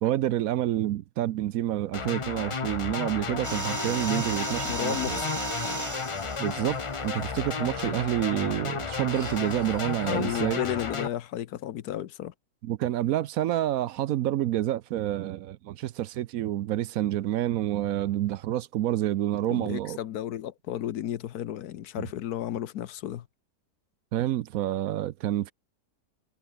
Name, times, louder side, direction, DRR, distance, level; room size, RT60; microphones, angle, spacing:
voice 1, 0.0-5.2 6.4-10.6 12.6-20.0 22.0-22.1 24.1-25.5, right 13 dB, 70° right, 1.0 m, -28 dB
sound 1, 1.9-11.1, left 5 dB, 35° left, 0.5 m, -33 dB
sound 2, 3.4-8.0 9.1-10.5, right 2 dB, 15° right, 0.9 m, -36 dB
voice 2, 4.6-5.3 10.1-12.3 19.4-23.3, left 11 dB, 80° left, 1.3 m, -33 dB
omnidirectional pair, 1.7 m